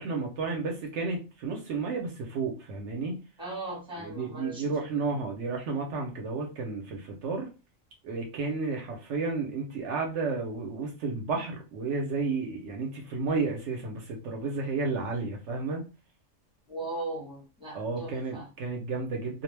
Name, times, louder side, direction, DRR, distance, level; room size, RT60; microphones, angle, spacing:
voice 1, 0.0-3.2 3.9-7.5 8.0-15.8 17.7-19.4, right 4 dB, 70° right, 1 dB, 0.9 m, -32 dB
voice 2, 3.4-4.6 16.7-18.4, right 2 dB, 5° right, -2 dB, 0.9 m, -38 dB
2.3 x 2.1 x 3.1 m, 0.31 s
omnidirectional pair, 1.3 m